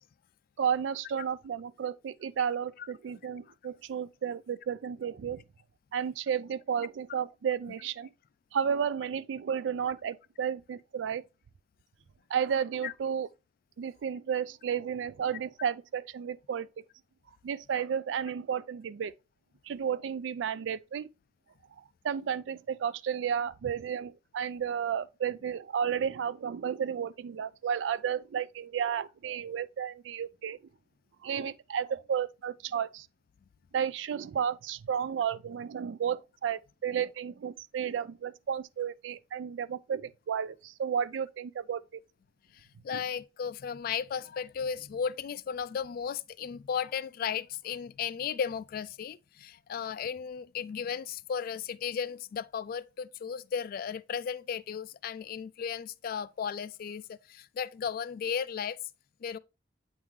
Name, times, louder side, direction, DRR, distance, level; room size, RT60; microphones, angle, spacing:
voice 1, 0.6-5.4 5.9-8.1 8.5-11.2 12.3-13.3 13.8-16.7 17.4-19.1 19.7-21.1 22.0-30.6 31.2-33.1 33.7-42.0 42.9-43.0, right 8 dB, 80° right, 0.3 m, -32 dB
voice 2, 42.5-58.8 59.2-59.4, left 7 dB, 55° left, 0.3 m, -35 dB
8.5 x 3.6 x 3.1 m
head